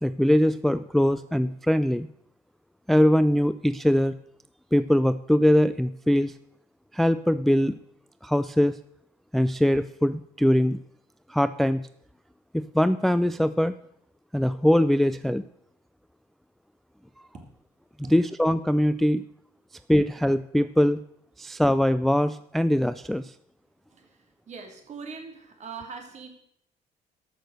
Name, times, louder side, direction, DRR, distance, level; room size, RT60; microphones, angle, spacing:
voice 1, 0.0-2.1 2.9-4.1 4.7-6.3 6.9-7.7 8.2-8.8 9.3-10.8 11.3-11.8 12.5-13.8 14.3-15.4 18.1-19.2 19.9-21.0 21.4-23.3, equal, ahead, 14 dB, 0.3 m, -22 dB
voice 2, 23.9-26.3, right 5 dB, 45° right, 4 dB, 3.0 m, -42 dB
13.5 x 6.3 x 6.5 m, 0.70 s
cardioid pair, 110°, 17 cm